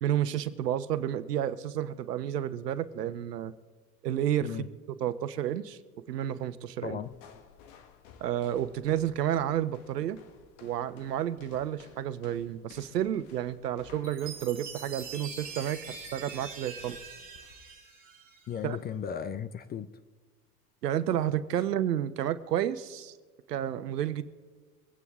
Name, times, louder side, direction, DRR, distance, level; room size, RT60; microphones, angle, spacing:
voice 1, 0.0-3.5 4.0-4.6 5.0-5.8 6.1-7.0 8.2-10.2 10.6-17.0 18.6-18.8 20.8-23.2 23.5-24.2, right 11 dB, 80° right, 1.1 m, -31 dB
voice 2, 6.8-7.2 18.5-19.9, left 8 dB, 20° left, 0.6 m, -35 dB
sound 1, 7.0-17.8, left 7 dB, 55° left, 1.7 m, -56 dB
Chime, 14.0-18.6, right 5 dB, 20° right, 3.6 m, -44 dB
24.5 x 9.4 x 3.7 m
hypercardioid pair, 105°, 47 cm